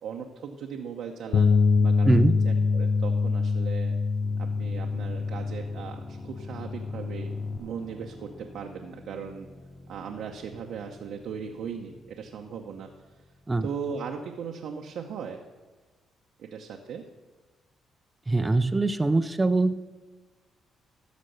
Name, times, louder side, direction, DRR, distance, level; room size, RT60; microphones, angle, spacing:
voice 1, 0.0-2.1 2.4-3.9 4.4-7.3 7.6-9.5 9.9-12.9 13.6-15.4 16.4-17.0, right 6 dB, 75° right, 2 dB, 0.8 m, -38 dB
Bass guitar, 1.3-7.6, left 4 dB, 60° left, 0.4 m, -25 dB
sound 1, 4.2-13.8, left 2 dB, 25° left, 1.7 m, -48 dB
voice 2, 18.3-19.9, right 2 dB, 20° right, 9 dB, 0.5 m, -23 dB
13.5 x 5.2 x 6.6 m, 1.3 s
cardioid pair, 90°, 0 cm